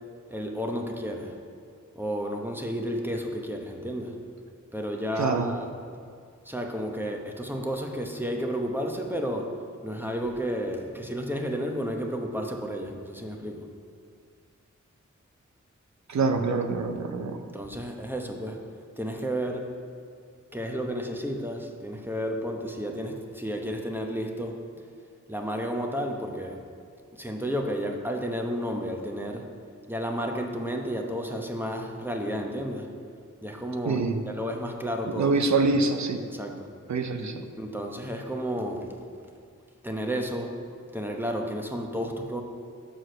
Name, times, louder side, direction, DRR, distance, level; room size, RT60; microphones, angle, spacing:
voice 1, 0.3-1.4 1.9-4.2 4.7-5.6 5.9-6.0 6.4-13.7 17.5-18.6 19.0-19.7 20.5-24.6 25.3-26.6 27.1-29.5 29.9-32.9 33.4-35.3 36.3-36.7 37.2-38.9 39.8-40.6 40.9-42.4, equal, 5° right, 1 dB, 0.9 m, -32 dB
voice 2, 16.1-17.4 33.9-34.2 35.2-36.2 36.9-37.3, right 4 dB, 65° right, 7 dB, 0.7 m, -25 dB
6.3 x 4.8 x 6.4 m, 2.2 s
cardioid pair, 50°, 31 cm